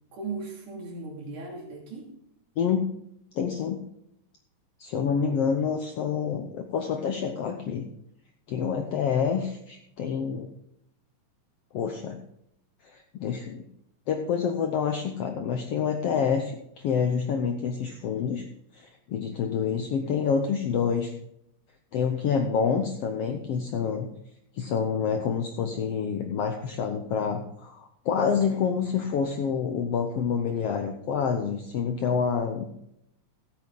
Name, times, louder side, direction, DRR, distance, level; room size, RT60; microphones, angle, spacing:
voice 1, 0.1-2.1, right 3 dB, 70° right, -1 dB, 4.0 m, -37 dB
voice 2, 2.6-2.9 3.3-3.8 4.8-7.9 8.5-10.5 11.7-12.2 12.8-13.6 14.1-18.4 18.7-21.1 21.9-24.1 24.5-32.7, left 6 dB, 75° left, 5 dB, 1.4 m, -27 dB
15.0 x 8.5 x 3.9 m, 0.76 s
omnidirectional pair, 3.7 m